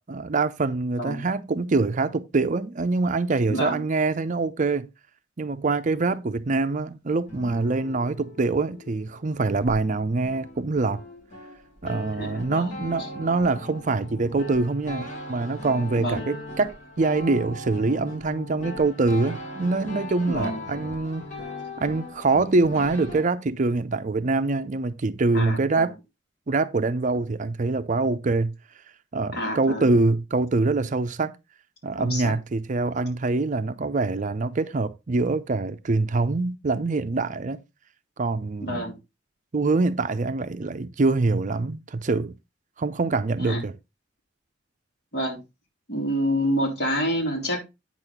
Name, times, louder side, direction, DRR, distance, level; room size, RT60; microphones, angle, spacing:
voice 1, 0.1-4.9 5.4-11.0 11.8-21.2 21.8-26.0 26.5-28.5 29.1-31.4 31.8-37.6 38.2-39.0 39.5-42.4 42.8-43.7, right 3 dB, 45° right, 0.5 m, -24 dB
voice 2, 3.5-3.8 12.2-12.7 16.0-16.3 20.3-20.6 25.3-25.9 29.3-29.9 32.0-32.3 38.6-39.0 43.4-43.6 45.1-45.4 45.9-47.6, equal, 60° left, 3.6 m, -27 dB
sound 1, 7.3-9.8 10.1-23.2, left 1 dB, 40° left, 4.9 m, -39 dB
8.9 x 6.2 x 3.5 m
head